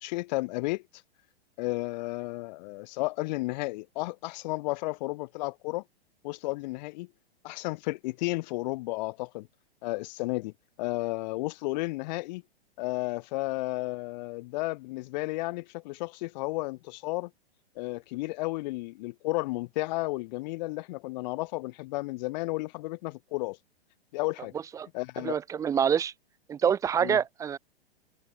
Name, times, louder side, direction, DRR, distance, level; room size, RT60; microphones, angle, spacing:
voice 1, 0.0-0.8 1.6-5.8 6.2-7.1 7.4-9.5 9.8-10.5 10.8-12.4 12.8-17.3 17.8-23.6 24.1-24.5 24.9-25.4 27.0-27.2, left 22 dB, 40° left, 2.4 m, -33 dB
voice 2, 25.2-26.1 26.5-27.6, right 8 dB, 10° right, 0.5 m, -26 dB
figure-of-eight pair, 110°, 33 cm